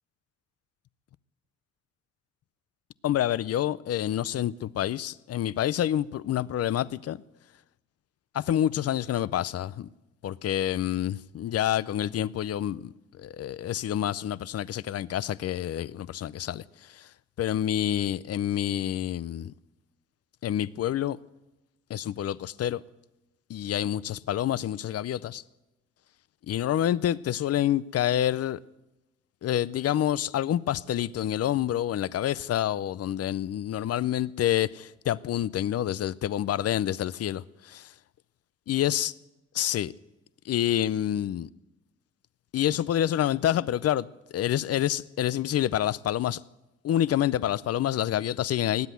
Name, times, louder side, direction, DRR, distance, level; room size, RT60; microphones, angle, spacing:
voice 1, 3.0-7.2 8.3-9.9 10.2-17.1 17.4-19.5 20.4-21.2 21.9-22.8 23.5-25.4 26.5-28.6 29.4-37.4 37.7-37.8 38.7-39.1 39.5-39.9 40.4-41.5 42.5-46.4 46.8-48.9, left 11 dB, 55° left, 0.6 m, -28 dB
18.5 x 8.3 x 9.3 m
cardioid pair, 90°, 30 cm